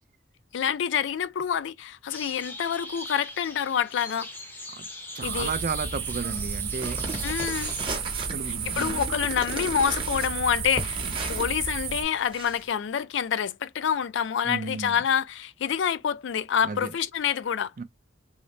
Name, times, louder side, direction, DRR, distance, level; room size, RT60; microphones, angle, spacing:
voice 1, 0.5-4.3 5.2-5.5 7.2-7.7 8.8-11.0 11.3-17.7, left 8 dB, 70° left, 0.4 m, -27 dB
sound 1, 2.1-7.9, left 2 dB, 10° left, 0.6 m, -41 dB
voice 2, 5.1-7.0 8.2-8.9 14.4-15.0 16.6-16.9 17.8-17.9, right 4 dB, 45° right, 0.4 m, -33 dB
sound 2, 5.2-12.0, right 6 dB, 85° right, 0.9 m, -32 dB
sound 3, 6.8-12.7, right 3 dB, 25° right, 0.9 m, -36 dB
3.9 x 2.0 x 3.0 m
head